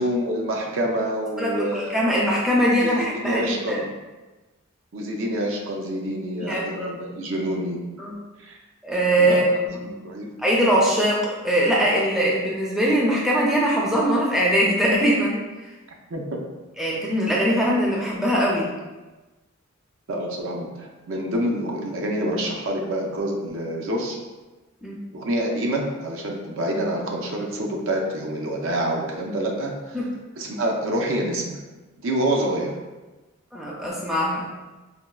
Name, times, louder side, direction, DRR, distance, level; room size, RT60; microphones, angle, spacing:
voice 1, 0.0-2.0 2.8-3.8 4.9-7.8 8.4-8.5 9.2-9.4 9.7-10.3 16.1-16.4 20.1-24.2 25.1-30.0 30.4-31.6 32.0-32.8, right 1 dB, 70° right, 0 dB, 0.5 m, -27 dB
voice 2, 1.4-3.8 6.3-6.9 8.0-8.2 8.8-9.8 10.4-15.4 16.8-18.7 24.8-25.0 29.9-30.1 33.5-34.5, equal, ahead, -5 dB, 0.4 m, -21 dB
4.1 x 2.2 x 2.3 m, 1.2 s
head